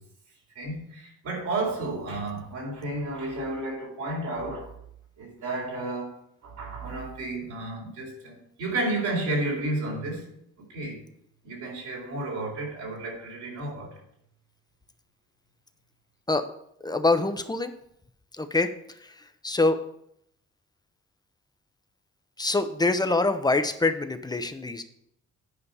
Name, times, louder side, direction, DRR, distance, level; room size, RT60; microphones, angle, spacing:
voice 1, 0.5-4.7 5.2-6.2 6.4-10.3 10.6-11.0 11.4-13.9, right 2 dB, 75° right, 4.1 m, -32 dB
voice 2, 16.8-17.7 18.4-18.7 19.4-19.8 22.4-24.8, left 2 dB, 15° left, 0.9 m, -24 dB
9.8 x 5.2 x 5.5 m
cardioid pair, 90°, 30 cm